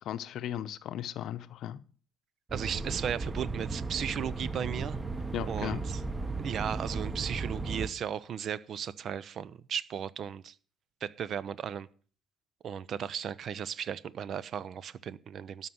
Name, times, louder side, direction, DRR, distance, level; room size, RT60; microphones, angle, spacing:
voice 1, 0.0-1.8 5.3-5.8, left 11 dB, 60° left, 0.7 m, -36 dB
sound 1, 2.5-7.9, right 3 dB, 25° right, 1.3 m, -35 dB
voice 2, 2.5-5.0 5.5-6.0 6.4-10.5 11.0-11.9 12.6-15.7, right 8 dB, 50° right, 0.6 m, -36 dB
12.5 x 5.7 x 8.0 m
hypercardioid pair, 55°, 0 cm